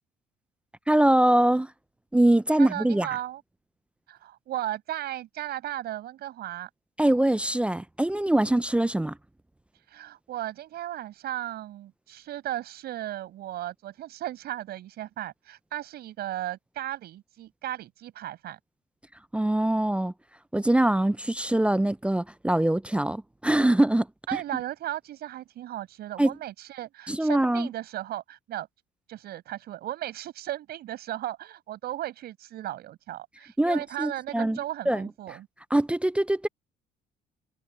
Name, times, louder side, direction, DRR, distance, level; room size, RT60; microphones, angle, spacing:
voice 1, 0.9-1.7 2.1-3.1 7.0-9.2 19.3-20.1 20.5-24.1 26.2-26.3 27.1-27.7 33.6-34.6 34.9-35.1 35.7-36.5, right 1 dB, 5° right, 0.5 m, -23 dB
voice 2, 2.6-3.4 4.1-6.7 9.9-18.6 24.3-28.7 29.1-35.5, right 13 dB, 70° right, 6.8 m, -36 dB
cardioid pair, 110°, 17 cm